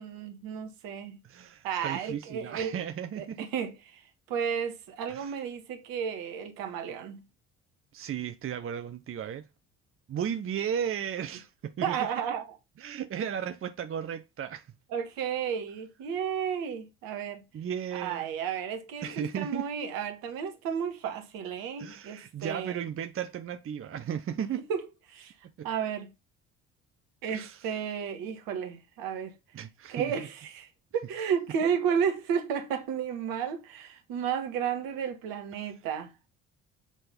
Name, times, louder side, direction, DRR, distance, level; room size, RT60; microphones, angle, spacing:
voice 1, 0.0-1.2 1.6-2.7 3.1-3.7 4.3-7.2 11.8-12.6 14.9-17.4 17.9-22.8 24.7-25.3 25.6-26.1 27.2-29.3 29.9-36.1, right 7 dB, 65° right, 1.7 m, -32 dB
voice 2, 1.2-3.4 5.1-5.3 7.9-9.5 10.1-12.1 12.8-14.7 17.5-18.3 19.0-19.7 21.8-24.6 25.6-25.7 27.3-27.7 29.5-30.1, right 9 dB, 35° right, 0.8 m, -35 dB
8.2 x 3.9 x 5.2 m
hypercardioid pair, 50°, 37 cm